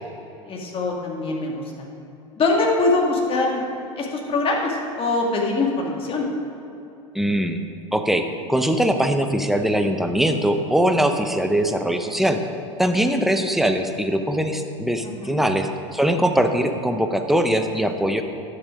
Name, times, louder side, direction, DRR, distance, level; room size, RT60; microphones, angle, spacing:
voice 1, 0.5-1.9 2.4-3.6 4.0-6.3 13.1-13.2 15.2-15.4, left 3 dB, 35° left, 0 dB, 2.1 m, -23 dB
voice 2, 7.1-7.6 7.9-12.4 12.8-18.2, right 1 dB, ahead, 6 dB, 0.8 m, -21 dB
11.0 x 7.1 x 5.1 m, 2.9 s
hypercardioid pair, 85°, 17 cm